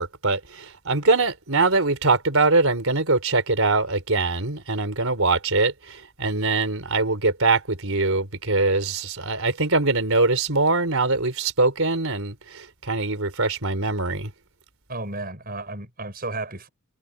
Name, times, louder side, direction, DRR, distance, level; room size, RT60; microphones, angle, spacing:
voice 1, 0.0-14.3, right 3 dB, 65° right, 4.5 m, -23 dB
voice 2, 14.9-16.7, right 2 dB, 40° right, 7.7 m, -33 dB
head